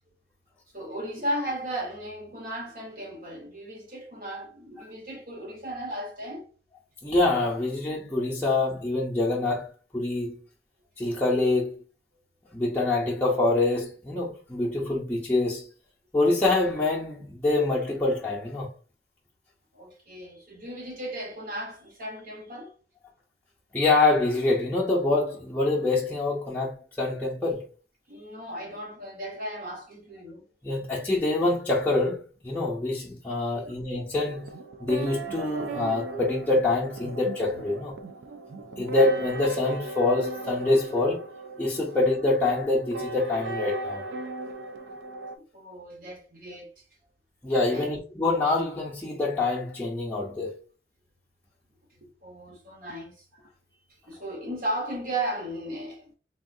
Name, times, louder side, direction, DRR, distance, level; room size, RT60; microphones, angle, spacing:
voice 1, 0.7-6.5 19.7-22.7 28.1-30.4 33.3-33.7 45.5-46.7 47.7-47.9 52.0-53.2 54.1-56.1, right 1 dB, 50° right, 0.9 m, -35 dB
voice 2, 7.0-10.4 11.0-11.8 12.5-15.7 16.1-18.7 23.7-27.7 30.6-34.5 34.8-38.0 38.8-41.2 41.6-44.0 47.4-50.6, left 2 dB, 10° left, 0.6 m, -25 dB
sound 1, 34.2-45.3, right 2 dB, 90° right, 0.4 m, -37 dB
3.5 x 2.4 x 2.5 m
head